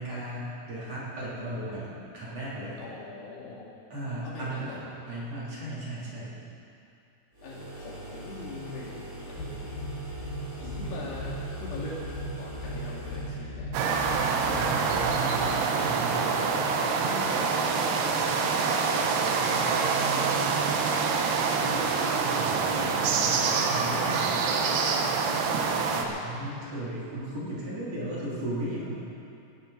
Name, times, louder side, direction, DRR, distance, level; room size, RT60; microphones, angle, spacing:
voice 1, 0.0-2.8 3.9-4.8 5.1-6.4 10.1-10.2 13.4-13.5 14.6-16.7 22.4-24.5 25.9-29.0, right 1 dB, 40° right, -8 dB, 4.0 m, -36 dB
voice 2, 2.8-3.7 4.2-4.9 7.4-9.7 10.6-14.2 16.4-18.6 19.5-21.6, left 2 dB, 80° left, -5 dB, 4.6 m, -42 dB
sound 1, 7.3-13.4, right 2 dB, 20° right, 4.8 m, -43 dB
sound 2, 9.4-15.7, equal, 60° left, 3.4 m, -37 dB
sound 3, 13.7-26.0, right 5 dB, 80° right, 3.0 m, -26 dB
18.0 x 14.5 x 4.1 m, 2.6 s
omnidirectional pair, 4.7 m